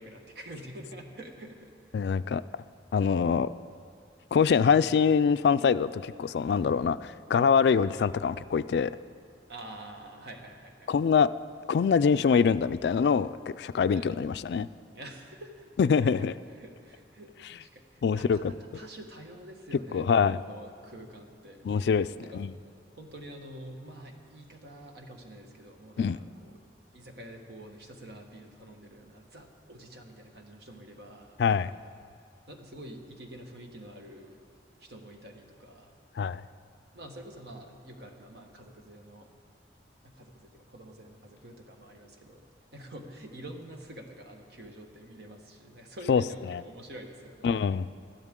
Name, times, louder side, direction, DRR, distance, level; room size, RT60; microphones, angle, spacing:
voice 1, 0.0-2.2 7.7-8.0 9.5-11.0 13.9-14.1 14.9-15.9 16.5-17.3 17.6-21.7 22.2-22.5 23.0-26.6 26.9-31.4 32.5-34.4 34.8-35.9 36.9-39.3 40.0-42.4 42.7-47.6, right 1 dB, 65° right, 3 dB, 1.4 m, -47 dB
voice 2, 1.9-2.4 2.9-3.5 4.3-8.9 10.9-11.3 11.7-13.3 13.6-14.7 15.8-16.3 18.0-18.5 19.9-20.4 21.7-22.1 22.3-22.5 26.0-26.2 31.4-31.7 36.2-36.4 46.1-46.2 46.5-46.6 47.4-47.9, left 6 dB, 70° left, 14 dB, 0.3 m, -24 dB
20.0 x 12.5 x 3.7 m, 2.3 s
head